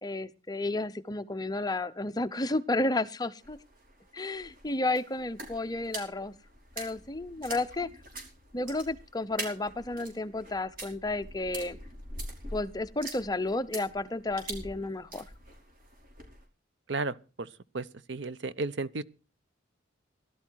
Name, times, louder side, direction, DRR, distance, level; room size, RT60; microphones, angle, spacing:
voice 1, 0.0-3.6 4.1-6.3 6.8-7.9 8.5-11.8 12.5-15.2, left 2 dB, 20° left, 0.8 m, -32 dB
sound 1, 3.4-16.4, right 2 dB, 50° right, 5.1 m, -44 dB
voice 2, 16.9-17.5 17.7-19.0, right 3 dB, 70° right, 0.8 m, -34 dB
17.0 x 12.5 x 4.7 m
head